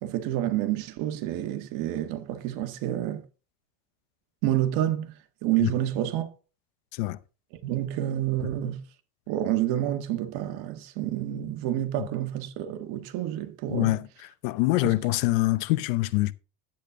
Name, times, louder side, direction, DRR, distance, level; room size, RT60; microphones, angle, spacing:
voice 1, 0.0-3.2 4.4-5.1 5.4-6.3 7.6-8.8 9.3-14.0 14.8-15.0, right 12 dB, 65° right, 1.6 m, -28 dB
voice 2, 13.7-14.1 14.4-16.3, left 19 dB, 85° left, 0.8 m, -25 dB
10.0 x 8.8 x 3.7 m
cardioid pair, 135°, 39 cm